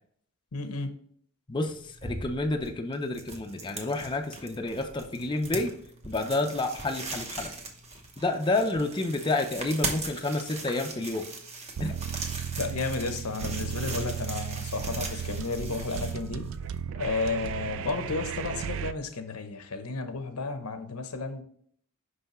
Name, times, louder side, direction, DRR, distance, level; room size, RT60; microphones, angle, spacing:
voice 1, 0.5-0.9 12.6-16.5 16.9-21.4, left 4 dB, 85° left, 8 dB, 0.8 m, -32 dB
voice 2, 1.5-5.7 6.1-7.5 8.2-11.3 11.8-12.0, left 2 dB, 20° left, 4 dB, 0.5 m, -29 dB
sound 1, 1.7-16.8, right 3 dB, 30° right, 0.9 m, -40 dB
sound 2, 11.8-18.9, right 8 dB, 60° right, 0.3 m, -35 dB
5.6 x 5.5 x 3.0 m, 0.62 s
head